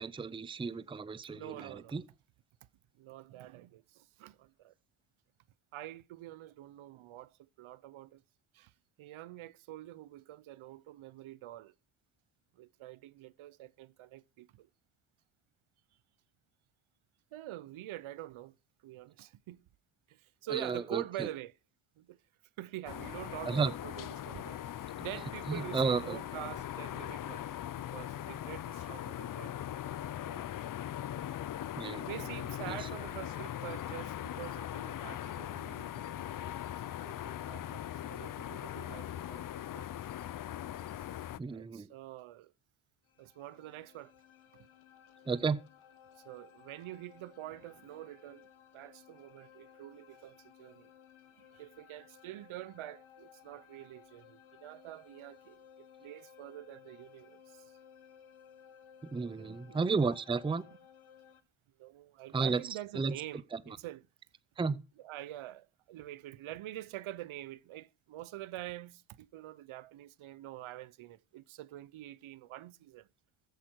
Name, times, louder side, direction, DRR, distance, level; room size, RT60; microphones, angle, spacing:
voice 1, 0.0-2.0 20.5-21.3 23.4-23.7 25.5-26.2 31.8-32.1 32.7-32.9 41.4-41.9 45.3-45.6 59.0-60.6 62.3-62.6 63.0-63.1 63.5-63.6 64.6-64.8, right 4 dB, 10° right, 0.5 m, -33 dB
voice 2, 1.3-2.0 3.0-4.7 5.7-8.2 8.5-8.7 9.0-11.7 12.5-14.7 17.3-18.6 18.8-19.7 20.1-21.5 22.0-22.2 22.6-24.6 25.0-27.5 27.7-29.5 30.1-30.5 32.0-36.7 37.0-39.9 41.5-42.5 43.2-44.1 46.2-48.5 48.7-50.9 51.4-57.8 59.4-59.9 61.8-64.0 65.0-73.1, right 14 dB, 75° right, 0.7 m, -46 dB
sound 1, 22.9-41.4, left 11 dB, 45° left, 0.5 m, -40 dB
sound 2, 43.1-61.4, left 8 dB, 75° left, 1.8 m, -59 dB
14.0 x 8.3 x 4.5 m
cardioid pair, 120°, 49 cm